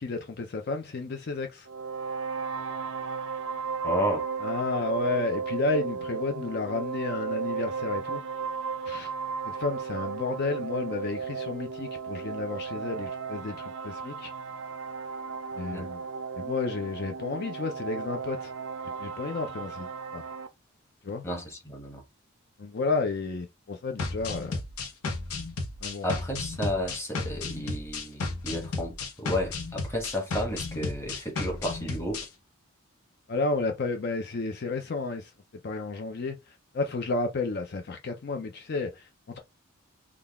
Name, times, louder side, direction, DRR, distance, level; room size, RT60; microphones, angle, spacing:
voice 1, 0.0-1.7 4.4-8.2 8.8-9.1 9.4-14.3 15.6-16.0 16.4-18.5 19.0-20.2 21.0-21.2 22.6-24.6 25.8-26.1 33.3-35.3 35.6-39.4, left 3 dB, 50° left, 0.5 m, -32 dB
sound 1, 1.7-20.5, right 5 dB, 60° right, 0.4 m, -35 dB
voice 2, 3.8-4.3 15.7-15.9 21.2-22.0 26.0-32.3, left 1 dB, 10° left, 1.0 m, -32 dB
sound 2, 24.0-32.3, left 3 dB, 90° left, 0.9 m, -33 dB
3.8 x 2.3 x 3.4 m
head